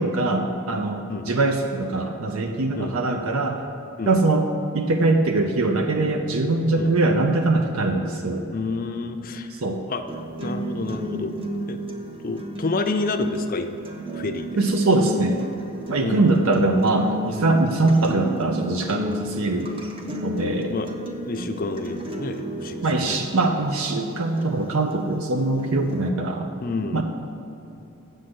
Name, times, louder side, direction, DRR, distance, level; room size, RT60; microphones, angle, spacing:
voice 1, 0.0-3.6 4.1-4.5 4.7-8.5 9.5-9.8 14.6-15.4 15.9-19.7 20.2-20.7 22.8-26.5 26.9-27.0, right 2 dB, 70° right, 4 dB, 0.6 m, -22 dB
voice 2, 8.5-9.5 9.9-10.0 10.4-11.3 11.7-11.8 12.2-13.7 14.1-14.5 16.0-16.6 20.7-21.0 21.3-23.2 26.6-27.0, left 3 dB, 40° left, 6 dB, 0.5 m, -29 dB
sound 1, 10.1-26.1, equal, 25° right, 0.8 m, -33 dB
7.6 x 6.5 x 7.8 m, 3.0 s
head